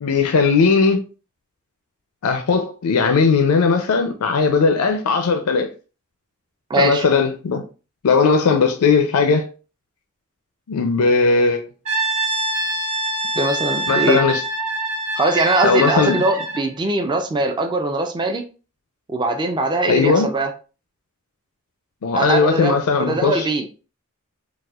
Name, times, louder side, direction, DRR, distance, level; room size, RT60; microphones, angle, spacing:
voice 1, 0.0-1.0 2.2-5.7 6.8-7.6 8.0-9.5 10.7-11.7 13.9-14.4 15.6-16.2 19.9-20.3 22.0-23.5, left 4 dB, 90° left, 0.4 m, -18 dB
voice 2, 6.7-7.1 13.3-14.2 15.2-18.4 19.1-20.5 22.1-23.7, right 2 dB, 20° right, 0.3 m, -21 dB
Brass instrument, 11.8-16.7, right 2 dB, 90° right, 1.3 m, -25 dB
4.0 x 2.3 x 2.3 m
head